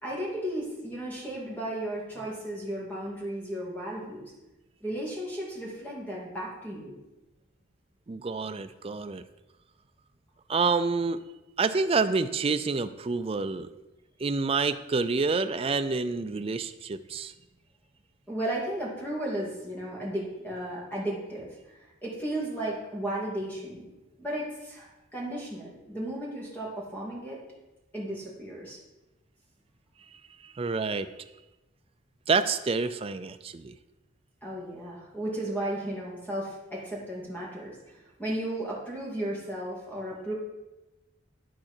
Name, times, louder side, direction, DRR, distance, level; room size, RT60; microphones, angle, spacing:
voice 1, 0.0-4.3 4.8-6.9 18.3-23.9 24.2-27.4 27.9-28.8 34.4-40.3, right 1 dB, 10° left, -4 dB, 2.4 m, -34 dB
voice 2, 8.1-9.2 10.5-11.2 11.6-13.7 14.2-17.3 30.4-31.1 32.3-33.7, right 4 dB, 30° right, 10 dB, 0.4 m, -28 dB
12.5 x 4.8 x 4.4 m, 1.0 s
head